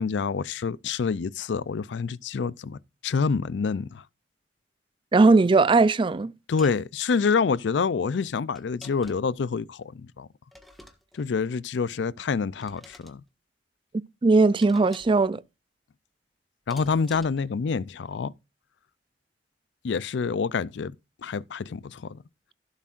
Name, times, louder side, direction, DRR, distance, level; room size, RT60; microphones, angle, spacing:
voice 1, 0.0-4.0 6.5-10.3 11.2-13.2 16.7-18.3 19.8-20.9 21.2-22.2, left 5 dB, 75° left, 0.4 m, -27 dB
voice 2, 5.1-6.3 14.2-15.4, right 3 dB, 30° right, 0.4 m, -19 dB
sound 1, 6.6-6.8 8.6-9.4 10.5-11.3 12.6-13.2 14.6-15.3 16.7-17.5, equal, ahead, 1.5 m, -49 dB
16.0 x 7.3 x 2.5 m
head